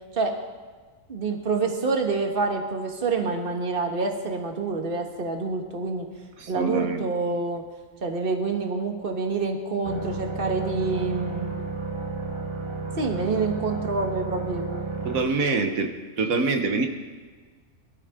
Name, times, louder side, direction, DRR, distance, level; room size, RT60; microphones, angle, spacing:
voice 1, 1.1-6.1 6.5-7.6 8.0-11.5 12.9-14.6, right 3 dB, 40° right, 3 dB, 1.6 m, -27 dB
voice 2, 6.4-7.0 15.0-15.9 16.2-16.9, right 3 dB, 85° right, 5 dB, 1.6 m, -25 dB
sound 1, 9.8-15.2, right 3 dB, 20° right, 1.4 m, -32 dB
22.5 x 12.5 x 3.7 m, 1.4 s
omnidirectional pair, 1.4 m